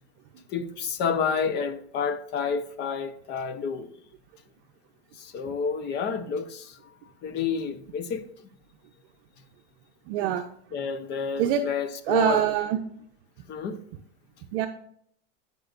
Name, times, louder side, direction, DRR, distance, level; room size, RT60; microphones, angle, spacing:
voice 1, 0.5-3.9 5.2-6.8 7.2-8.2 10.7-12.5 13.5-13.8, left 6 dB, 30° left, 0.8 m, -29 dB
voice 2, 10.1-10.4 11.4-11.6 12.1-12.8 14.5-14.7, right 11 dB, 55° right, 0.7 m, -24 dB
16.0 x 5.3 x 2.5 m
supercardioid pair, 145°, 33 cm